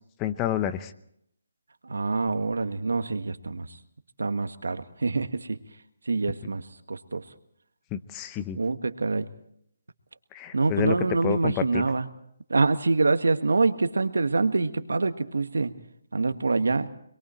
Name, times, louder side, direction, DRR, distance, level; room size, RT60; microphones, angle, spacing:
voice 1, 0.2-0.9 7.9-8.6 10.3-11.0 11.2-11.9, left 11 dB, 20° left, 11 dB, 0.8 m, -29 dB
voice 2, 1.8-3.7 4.2-5.6 6.1-7.2 8.5-9.3 10.5-12.1 12.5-15.7 16.1-16.9, right 3 dB, 80° right, 9 dB, 1.6 m, -25 dB
27.0 x 22.0 x 4.5 m, 0.71 s
hypercardioid pair, 160°, 0 cm